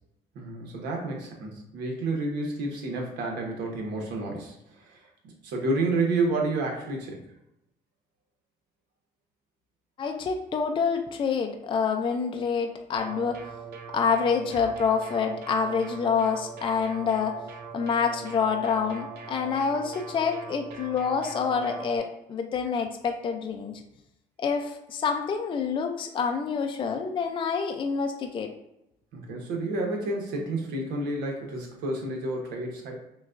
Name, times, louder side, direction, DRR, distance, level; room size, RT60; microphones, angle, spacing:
voice 1, 0.3-5.0 5.4-7.2 29.1-32.9, right 2 dB, 85° right, 0 dB, 1.1 m, -30 dB
voice 2, 10.0-13.4 13.9-17.4 17.7-23.8 24.4-28.5, left 6 dB, 30° left, 4 dB, 0.4 m, -27 dB
sound 1, 13.0-22.0, right 6 dB, 70° right, 0.6 m, -41 dB
6.1 x 2.3 x 2.5 m, 0.85 s
cardioid pair, 110°, 17 cm